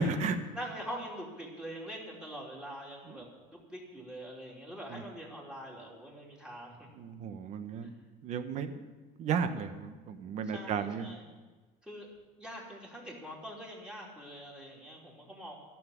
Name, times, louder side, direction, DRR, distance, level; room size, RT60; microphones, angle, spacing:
voice 1, 0.0-0.3 4.9-5.0 7.0-7.9 8.2-8.8 9.2-11.1, right 5 dB, 45° right, 9 dB, 1.1 m, -33 dB
voice 2, 0.5-6.9 10.4-11.2 11.8-12.1 12.4-15.6, equal, 5° right, -3 dB, 3.1 m, -44 dB
14.0 x 7.2 x 10.0 m, 1.3 s
cardioid pair, 155°, 17 cm